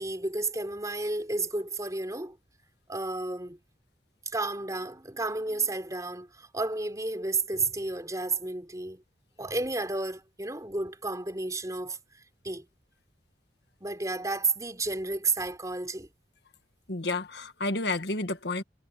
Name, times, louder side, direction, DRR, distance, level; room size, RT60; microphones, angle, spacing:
voice 1, 0.0-2.4 2.9-3.6 4.3-9.0 9.4-12.0 12.4-12.6 13.8-16.1, right 3 dB, 20° right, 4.0 m, -31 dB
voice 2, 16.9-18.6, left 2 dB, 70° left, 1.8 m, -30 dB
head